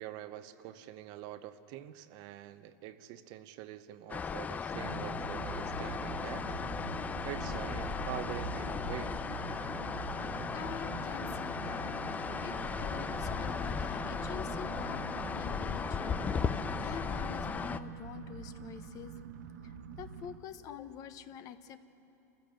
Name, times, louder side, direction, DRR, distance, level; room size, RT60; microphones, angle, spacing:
voice 1, 0.0-6.5 7.2-9.2 12.6-12.7, right 12 dB, 50° right, 12 dB, 0.8 m, -45 dB
sound 1, 4.1-17.8, left 6 dB, 15° left, 0.5 m, -36 dB
sound 2, 4.7-20.4, right 6 dB, 85° right, 1.3 m, -44 dB
voice 2, 10.3-12.0 12.4-19.2 19.6-21.8, left 9 dB, 40° left, 11 dB, 1.0 m, -47 dB
27.5 x 14.5 x 7.7 m, 2.9 s
supercardioid pair, 130°, 9 cm